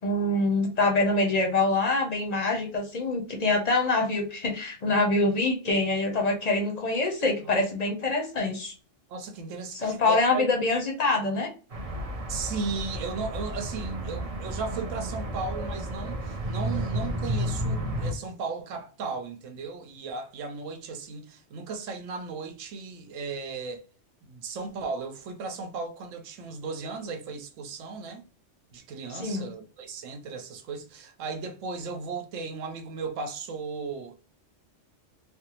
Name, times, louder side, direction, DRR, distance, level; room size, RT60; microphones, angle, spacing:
voice 1, 0.0-8.7 9.8-11.5 29.1-29.5, left 2 dB, 45° left, 0.6 m, -25 dB
voice 2, 9.1-10.4 12.3-23.8 24.2-28.2 28.7-34.1, right 4 dB, 85° right, 1.0 m, -36 dB
sound 1, 11.7-18.1, equal, 45° right, 0.5 m, -32 dB
3.4 x 2.0 x 2.8 m
omnidirectional pair, 1.3 m